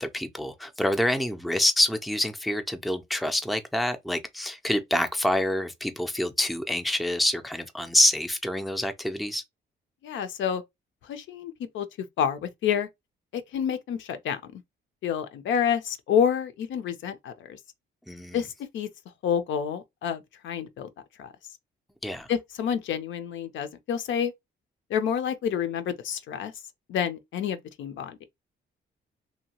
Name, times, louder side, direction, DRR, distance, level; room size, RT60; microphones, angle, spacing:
voice 1, 0.0-9.4 18.1-18.4 22.0-22.3, left 1 dB, ahead, 0.4 m, -26 dB
voice 2, 10.0-10.6 11.0-11.9 12.2-12.9 13.3-14.6 15.0-17.6 18.3-18.9 19.2-20.9 21.2-21.3 22.3-24.3 24.9-26.5 26.9-28.2, left 8 dB, 75° left, 0.6 m, -28 dB
2.8 x 2.2 x 2.8 m
cardioid pair, 90°, 20 cm